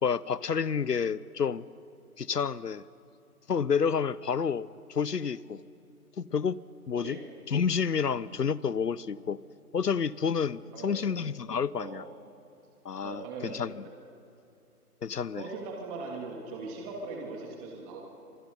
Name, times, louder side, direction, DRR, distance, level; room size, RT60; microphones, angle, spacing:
voice 1, 0.0-1.6 2.2-2.8 3.5-5.6 6.2-6.6 6.9-7.2 7.5-9.4 9.7-12.0 12.8-13.8 15.0-15.5, left 6 dB, 90° left, 20 dB, 0.8 m, -29 dB
voice 2, 7.0-7.3 10.7-11.1 11.8-12.0 13.0-13.7 15.4-18.0, right 3 dB, 20° right, -1 dB, 2.8 m, -40 dB
29.0 x 26.0 x 5.5 m, 2.5 s
figure-of-eight pair, 140°, 47 cm